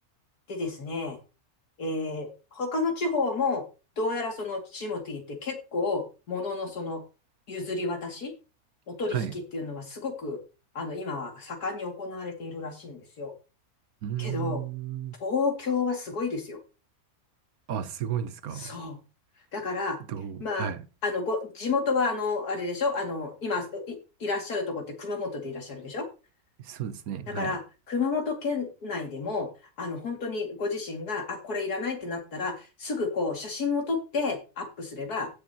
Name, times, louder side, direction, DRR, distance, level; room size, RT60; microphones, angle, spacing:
voice 1, 0.5-1.2 1.8-3.6 4.0-7.0 7.5-8.3 8.9-9.2 9.5-10.4 10.7-13.3 14.2-14.6 15.2-16.6 18.6-19.0 19.5-20.0 20.4-20.7 21.0-26.1 27.3-27.6 27.9-29.5 29.8-35.3, left 4 dB, 75° left, 2.8 m, -31 dB
voice 2, 14.0-15.1 17.7-18.8 20.1-20.9 26.6-27.6, right 9 dB, 70° right, 1.2 m, -33 dB
16.5 x 6.8 x 2.9 m
omnidirectional pair, 1.6 m